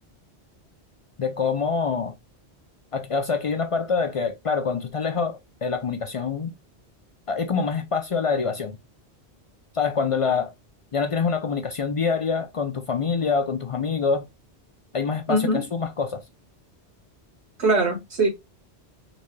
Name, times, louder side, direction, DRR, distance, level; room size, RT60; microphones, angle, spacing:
voice 1, 1.2-2.1 2.9-6.5 7.3-8.8 9.7-10.5 10.9-14.2 14.9-16.2, left 5 dB, 60° left, 0.3 m, -25 dB
voice 2, 15.3-15.6 17.6-18.3, right 2 dB, 75° right, 1.8 m, -21 dB
3.9 x 2.2 x 3.1 m
omnidirectional pair, 1.1 m